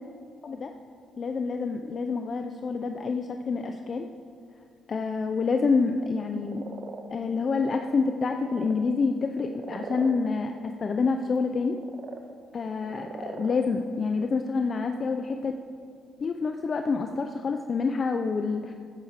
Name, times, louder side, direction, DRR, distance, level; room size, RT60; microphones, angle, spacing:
voice 1, 1.2-4.1 4.9-6.7 7.1-11.8 12.5-15.5 16.2-18.7, left 4 dB, 45° left, 5 dB, 0.7 m, -27 dB
sound 1, 6.3-7.8 8.1-8.8 9.3-10.1 11.5-12.2 12.8-13.6, right 5 dB, 60° right, 1.4 m, -40 dB
13.0 x 9.1 x 6.7 m, 2.2 s
cardioid pair, 90°, 0 cm